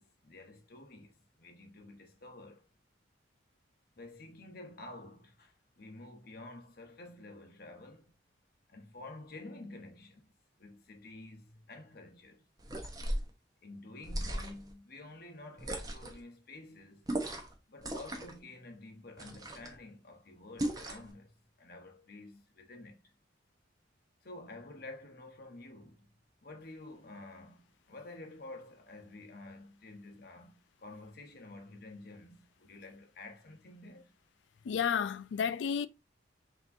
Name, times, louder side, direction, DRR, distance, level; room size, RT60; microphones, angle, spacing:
voice 1, 0.0-2.7 4.0-8.1 8.7-12.5 13.6-17.0 17.7-23.1 24.2-26.1 26.4-34.1, left 2 dB, 50° left, 0.8 m, -50 dB
sound 1, 12.6-13.3 14.0-14.7 15.6-16.2 17.1-17.5 17.8-18.4 19.2-19.8 20.6-21.1, right 1 dB, 20° right, 0.7 m, -37 dB
voice 2, 34.6-35.9, left 7 dB, 70° left, 0.3 m, -31 dB
5.7 x 2.9 x 2.6 m
head